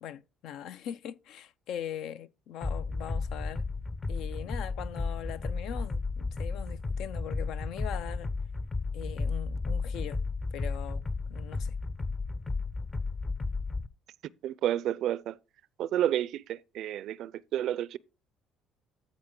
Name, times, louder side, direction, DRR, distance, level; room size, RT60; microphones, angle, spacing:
voice 1, 0.0-3.6 4.1-8.3 8.9-10.2 10.5-11.7, left 10 dB, 75° left, 0.5 m, -41 dB
sound 1, 2.6-13.9, left 3 dB, 25° left, 0.7 m, -33 dB
voice 2, 14.4-15.4 15.8-18.0, right 11 dB, 70° right, 0.4 m, -30 dB
14.0 x 5.0 x 3.7 m
cardioid pair, 105°, 0 cm